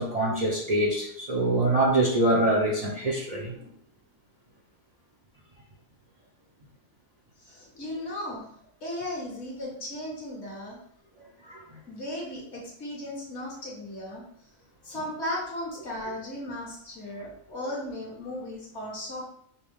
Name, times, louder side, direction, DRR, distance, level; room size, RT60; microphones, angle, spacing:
voice 1, 0.0-3.7 11.4-11.6, right 1 dB, 35° right, -4 dB, 0.7 m, -25 dB
voice 2, 7.4-8.5 8.8-10.8 11.9-14.2 14.8-19.2, left 1 dB, 60° left, -3 dB, 1.5 m, -36 dB
5.4 x 2.3 x 3.4 m, 0.67 s
omnidirectional pair, 1.4 m